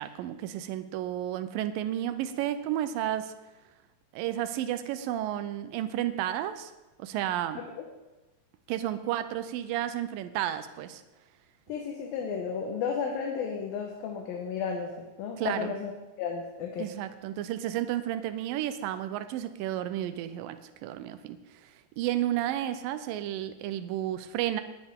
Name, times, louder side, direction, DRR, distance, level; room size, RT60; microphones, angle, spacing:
voice 1, 0.0-3.3 4.1-6.7 7.0-7.6 8.7-11.0 15.4-15.7 16.8-24.6, right 12 dB, 85° right, 11 dB, 2.0 m, -32 dB
voice 2, 11.7-15.9 16.2-16.9, left 6 dB, 70° left, 2 dB, 2.7 m, -33 dB
19.0 x 10.5 x 3.6 m, 1.1 s
omnidirectional pair, 4.7 m